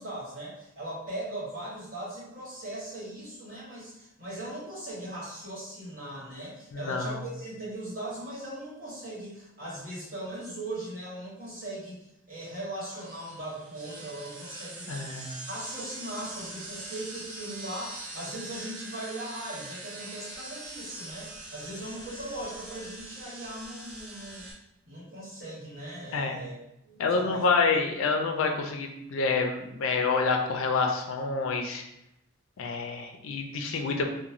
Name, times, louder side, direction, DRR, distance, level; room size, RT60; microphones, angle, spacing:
voice 1, 0.0-12.0 12.3-24.5 24.8-26.5 26.8-27.4, right 1 dB, 40° right, -8 dB, 1.2 m, -39 dB
voice 2, 6.7-7.2 14.9-15.3 26.1-26.4 27.0-31.8 32.6-34.0, left 4 dB, 75° left, 3 dB, 0.4 m, -27 dB
sound 1, 12.9-24.5, right 2 dB, 85° right, 0.6 m, -43 dB
2.9 x 2.1 x 2.5 m, 0.83 s
head